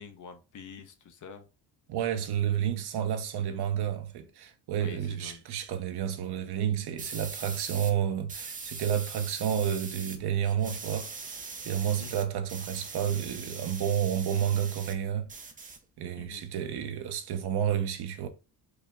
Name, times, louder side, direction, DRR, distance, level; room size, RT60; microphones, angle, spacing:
voice 1, 0.0-1.5 4.8-5.4 11.8-12.1 16.2-16.4, left 6 dB, 45° left, 0.7 m, -47 dB
voice 2, 1.9-11.3 11.6-15.3 16.0-18.3, right 9 dB, 60° right, 0.8 m, -30 dB
sound 1, 7.0-7.9 8.3-10.2 10.4-15.0 15.3-16.3, right 4 dB, 20° right, 0.4 m, -41 dB
4.8 x 2.1 x 3.6 m
cardioid pair, 100°, 45 cm